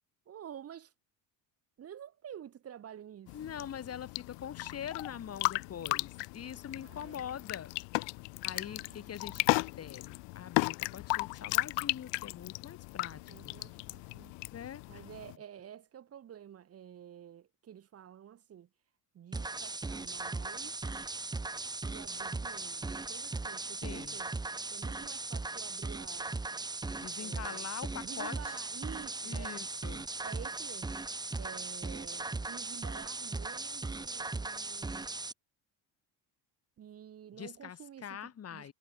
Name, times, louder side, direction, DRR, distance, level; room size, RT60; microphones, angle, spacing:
voice 1, 0.3-0.9 1.8-3.4 6.7-7.2 8.5-9.5 13.0-14.4 14.9-18.7 19.1-20.8 21.8-24.3 24.7-26.3 27.2-27.7 28.0-29.6 30.2-31.0 31.4-35.1 36.8-38.7, right 9 dB, 35° right, 1.4 m, -50 dB
sound 1, 3.3-15.4, left 28 dB, 90° left, 0.7 m, -35 dB
voice 2, 3.3-7.7 8.4-13.6 14.5-15.0 23.8-24.2 27.0-28.6 29.2-30.1 37.4-38.7, left 9 dB, 35° left, 2.9 m, -44 dB
sound 2, 19.3-35.3, right 3 dB, 10° right, 1.2 m, -38 dB
cardioid pair, 145°, 42 cm